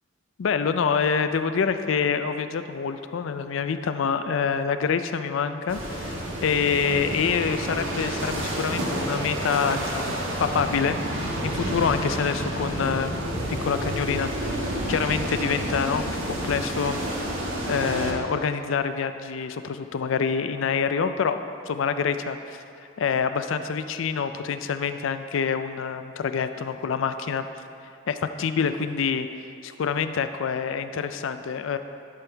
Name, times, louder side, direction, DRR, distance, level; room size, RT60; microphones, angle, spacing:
voice 1, 0.4-14.5 14.9-17.1 17.7-21.4 21.7-22.6 23.0-27.4 28.1-29.3 29.6-31.8, left 6 dB, 75° left, 10 dB, 0.4 m, -26 dB
sound 1, 5.7-18.1, right 1 dB, 80° right, 1.3 m, -29 dB
11.5 x 6.2 x 3.3 m, 2.6 s
head